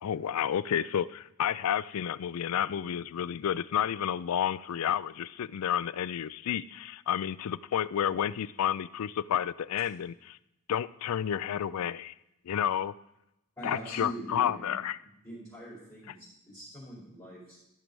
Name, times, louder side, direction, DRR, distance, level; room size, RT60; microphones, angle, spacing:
voice 1, 0.0-10.4 10.7-12.1 12.5-12.9 13.6-15.0, left 9 dB, 70° left, 18 dB, 0.4 m, -30 dB
voice 2, 13.6-14.8 15.2-17.6, equal, 15° left, -10 dB, 4.6 m, -42 dB
14.0 x 6.2 x 5.3 m, 0.87 s
head